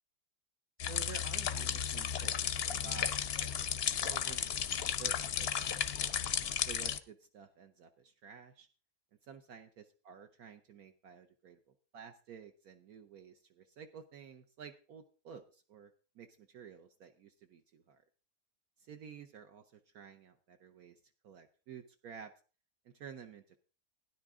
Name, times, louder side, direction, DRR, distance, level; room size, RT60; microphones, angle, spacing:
sound 1, 0.8-7.0, left 8 dB, 55° left, 0.7 m, -34 dB
voice 1, 0.9-4.5 4.8-6.2 6.6-8.7 9.2-11.6 11.9-15.9 16.2-18.0 18.8-21.0 21.2-22.3 22.8-23.6, right 7 dB, 70° right, 6 dB, 1.2 m, -52 dB
16.5 x 10.0 x 3.6 m, 0.37 s
omnidirectional pair, 1.7 m